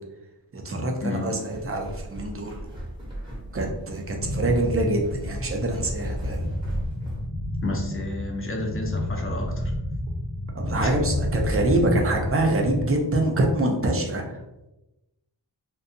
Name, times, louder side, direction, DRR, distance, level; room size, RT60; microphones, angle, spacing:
voice 1, 0.5-2.6 3.5-6.5 10.5-14.4, right 1 dB, 35° right, 1 dB, 0.4 m, -25 dB
sound 1, 1.2-7.3, equal, 10° right, 0.8 m, -37 dB
sound 2, 4.2-12.9, left 1 dB, 75° left, 0.6 m, -30 dB
voice 2, 7.6-9.7 10.8-10.9, left 2 dB, 30° left, 1 dB, 0.5 m, -31 dB
2.6 x 2.2 x 2.5 m, 0.96 s
wide cardioid pair, 90°, 43 cm